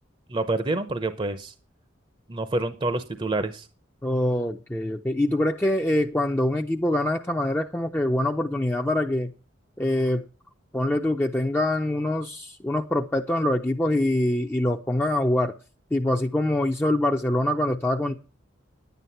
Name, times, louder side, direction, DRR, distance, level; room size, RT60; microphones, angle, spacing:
voice 1, 0.3-1.5 2.3-3.7, right 2 dB, 25° right, 11 dB, 0.7 m, -27 dB
voice 2, 4.0-9.3 9.8-10.2 10.7-15.5 15.9-18.1, left 1 dB, 10° left, 2 dB, 0.6 m, -24 dB
10.5 x 9.4 x 5.7 m, 0.34 s
head